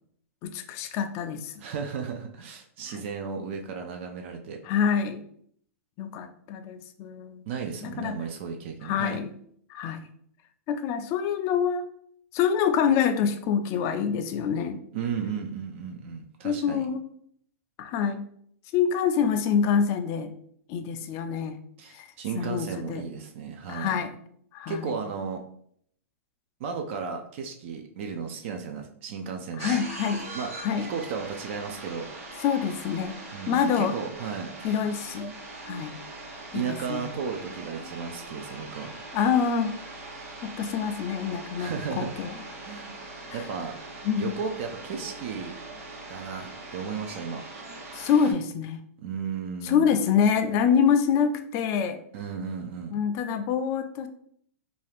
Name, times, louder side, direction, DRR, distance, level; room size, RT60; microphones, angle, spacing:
voice 1, 0.4-1.5 2.9-3.0 4.6-5.2 6.0-7.4 7.8-8.2 8.8-9.3 9.7-10.1 10.7-11.8 12.3-14.8 16.4-17.0 17.8-18.3 18.7-20.3 20.7-21.6 21.9-22.1 22.4-23.0 23.7-24.2 24.5-24.9 29.6-30.9 32.4-33.2 33.5-34.0 34.6-35.3 35.6-36.0 36.5-37.1 39.1-39.7 40.4-42.3 43.3-43.4 44.0-44.3 47.9-48.8 49.6-52.0 52.9-54.1, left 7 dB, 35° left, 9 dB, 0.3 m, -26 dB
voice 2, 1.6-4.6 7.5-9.2 14.9-16.9 21.8-24.0 24.7-25.4 26.6-29.7 30.3-30.5 30.9-32.1 33.3-34.5 36.5-38.9 41.6-42.2 42.6-43.0 43.3-43.8 44.2-45.6 46.1-47.4 49.0-49.9 52.1-53.0, right 6 dB, 55° right, 4 dB, 0.4 m, -34 dB
sound 1, 29.6-48.3, right 2 dB, 75° right, 1.1 m, -41 dB
2.6 x 2.3 x 3.3 m, 0.66 s
hypercardioid pair, 125°, 8 cm